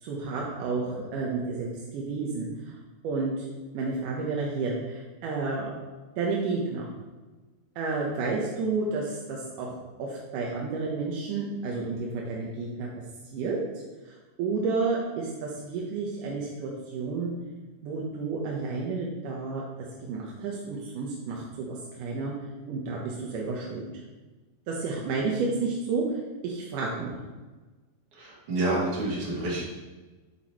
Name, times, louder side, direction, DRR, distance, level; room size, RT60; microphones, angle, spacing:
voice 1, 0.0-2.8 3.0-3.5 3.7-5.7 6.2-6.9 7.8-12.9 13.3-13.6 14.1-17.3 17.8-19.6 20.0-22.3 22.7-23.9 24.7-26.0 26.4-27.2, right 4 dB, 70° right, -3 dB, 2.1 m, -31 dB
voice 2, 28.1-29.6, right 2 dB, 50° right, -5 dB, 3.2 m, -28 dB
8.7 x 8.2 x 3.1 m, 1.2 s
omnidirectional pair, 4.7 m